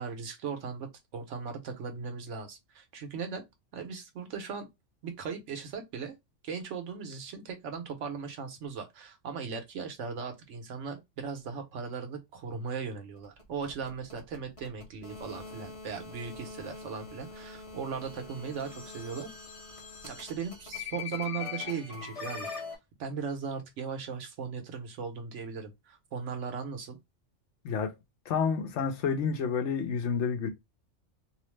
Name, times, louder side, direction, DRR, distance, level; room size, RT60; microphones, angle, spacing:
voice 1, 0.0-3.4 3.7-4.7 5.0-6.1 6.4-19.3 20.0-22.5 23.0-27.0, right 5 dB, 75° right, 1.1 m, -38 dB
sound 1, 13.2-22.8, left 5 dB, 35° left, 0.7 m, -42 dB
voice 2, 27.6-28.0 28.3-30.5, left 6 dB, 75° left, 0.9 m, -29 dB
2.8 x 2.0 x 3.1 m
omnidirectional pair, 1.3 m